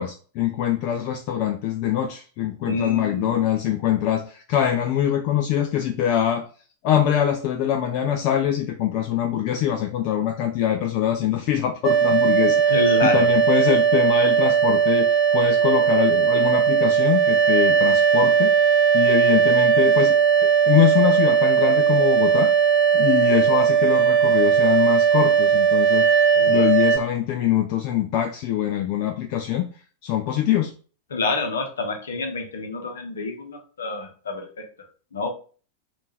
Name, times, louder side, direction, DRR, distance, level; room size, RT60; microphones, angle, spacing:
voice 1, 0.0-6.5 6.8-12.6 13.0-20.2 20.7-22.5 22.9-26.1 26.5-29.7 30.0-30.7, left 10 dB, 45° left, 4 dB, 0.4 m, -23 dB
voice 2, 2.6-3.5 12.7-13.3 26.3-26.7 31.1-34.7 35.1-35.3, left 3 dB, 65° left, 4 dB, 0.9 m, -28 dB
sound 1, 11.8-27.0, right 7 dB, 20° right, 1.4 m, -18 dB
3.6 x 2.5 x 4.2 m, 0.39 s
figure-of-eight pair, 90°, 0 cm